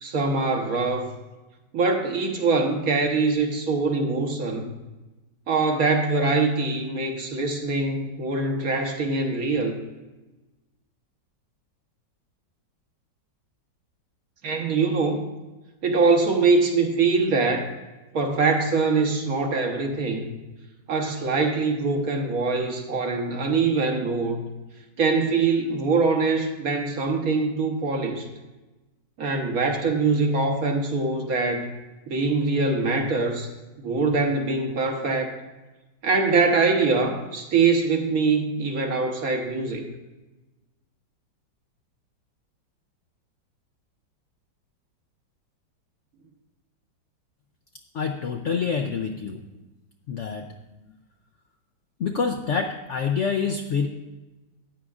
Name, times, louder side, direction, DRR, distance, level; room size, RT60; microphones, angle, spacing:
voice 1, 0.0-1.1 1.7-4.7 5.5-9.8 14.4-15.3 15.8-17.7 18.1-20.2 20.9-24.5 25.0-28.3 29.2-31.7 32.1-33.5 33.8-35.3 36.0-39.8, right 4 dB, 55° right, 3 dB, 1.4 m, -23 dB
voice 2, 47.9-49.4 50.1-50.5 52.0-53.9, left 5 dB, 70° left, 4 dB, 0.7 m, -26 dB
13.5 x 9.3 x 2.4 m, 1.1 s
omnidirectional pair, 1.9 m